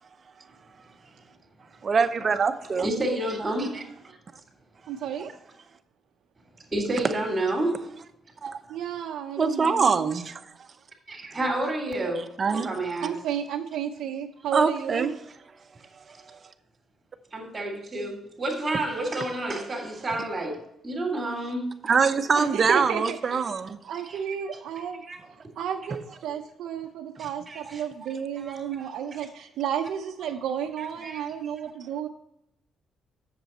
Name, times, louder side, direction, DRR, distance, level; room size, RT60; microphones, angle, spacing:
voice 1, 1.8-2.9 8.4-8.6 9.4-10.4 12.4-12.7 14.5-15.1 16.3-16.4 21.8-23.8, right 5 dB, 40° right, 9 dB, 0.8 m, -24 dB
voice 2, 2.8-4.1 5.2-5.3 6.7-7.9 11.1-12.2 12.5-13.2 14.4-14.5 17.3-21.7 24.1-24.2 25.1-25.2 27.2-27.8 28.4-28.7 29.1-29.2 31.0-31.2, right 1 dB, 25° right, -4 dB, 2.6 m, -30 dB
voice 3, 4.9-5.3 8.7-10.1 13.0-15.1 22.4-23.4 23.8-25.0 25.6-32.1, right 8 dB, 80° right, 3 dB, 0.6 m, -32 dB
8.0 x 6.8 x 4.3 m, 0.80 s
cardioid pair, 90°, 0 cm